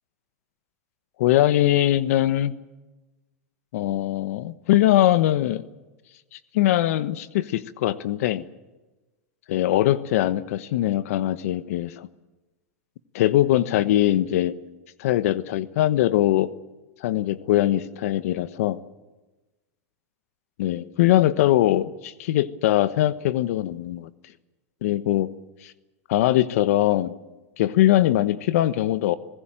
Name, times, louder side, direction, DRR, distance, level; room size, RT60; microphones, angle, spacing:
voice 1, 1.2-2.5 3.7-5.6 6.3-8.4 9.5-12.1 13.1-14.6 15.0-16.5 17.0-18.8 20.6-24.1 24.8-25.3 25.6-25.7 26.1-27.1 27.6-29.1, left 13 dB, 70° left, 15 dB, 1.2 m, -21 dB
26.0 x 16.5 x 8.9 m, 1.1 s
hypercardioid pair, 115°, 8 cm